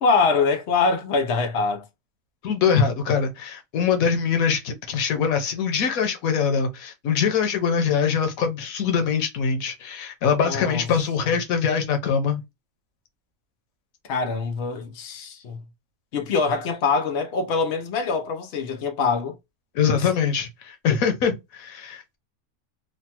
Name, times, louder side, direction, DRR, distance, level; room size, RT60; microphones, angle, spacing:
voice 1, 0.0-1.8 10.4-10.8 14.1-15.6 16.1-19.3 19.9-20.1, left 4 dB, 55° left, 0.8 m, -24 dB
voice 2, 2.4-12.4 19.7-22.2, left 6 dB, 90° left, 1.2 m, -23 dB
3.2 x 2.2 x 2.8 m
omnidirectional pair, 1.4 m